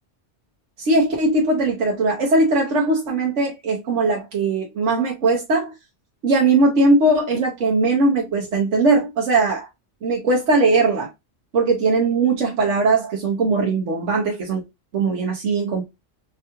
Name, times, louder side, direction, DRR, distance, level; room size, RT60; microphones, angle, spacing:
voice 1, 0.8-5.7 6.2-9.7 10.0-11.1 11.5-14.6 14.9-15.8, right 3 dB, 80° right, 1.3 m, -19 dB
4.6 x 2.3 x 2.9 m
omnidirectional pair, 1.2 m